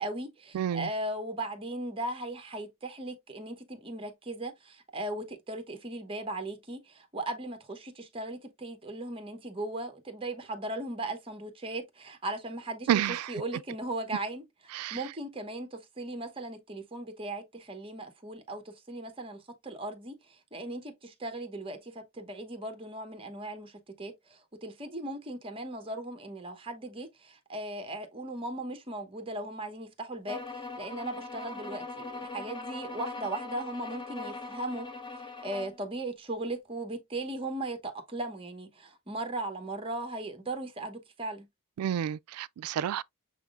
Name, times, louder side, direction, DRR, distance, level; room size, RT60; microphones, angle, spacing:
voice 1, 0.0-12.9 13.3-14.4 14.9-23.7 24.0-34.9 35.4-41.5, right 2 dB, 25° right, 0.8 m, -38 dB
voice 2, 0.5-0.9 12.9-13.4 14.7-15.1 41.8-43.0, right 10 dB, 80° right, 0.3 m, -30 dB
sound 1, 30.3-35.8, left 3 dB, 20° left, 0.7 m, -40 dB
6.1 x 3.5 x 2.4 m
head